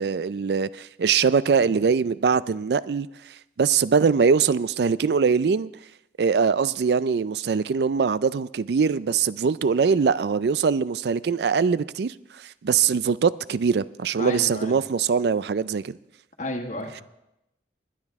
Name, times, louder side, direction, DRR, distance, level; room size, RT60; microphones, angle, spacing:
voice 1, 0.0-3.1 3.6-5.7 6.2-16.0, right 5 dB, 65° right, 0.4 m, -22 dB
voice 2, 14.2-14.7 16.4-17.0, left 1 dB, 45° left, 1.4 m, -32 dB
20.5 x 10.0 x 3.6 m
head